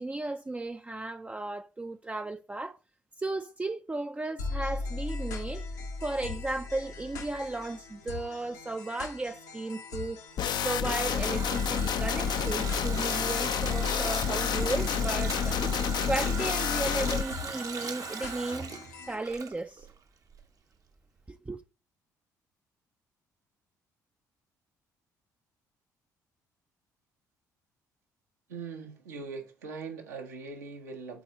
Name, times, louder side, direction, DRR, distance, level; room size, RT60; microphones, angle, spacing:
voice 1, 0.0-2.8 3.2-5.6 6.0-10.2 10.6-15.6 16.1-18.7 19.1-19.9 21.3-21.6, right 2 dB, 15° right, 0.5 m, -35 dB
sound 1, 4.4-19.1, left 4 dB, 80° left, 1.2 m, -41 dB
sound 2, 10.4-17.2, left 7 dB, 50° left, 0.5 m, -29 dB
Water tap faucet, 10.4-20.0 20.3-20.4, right 5 dB, 40° right, 0.8 m, -39 dB
voice 2, 28.5-31.2, right 4 dB, 80° right, 1.3 m, -41 dB
10.5 x 4.2 x 3.0 m
figure-of-eight pair, 45°, 9 cm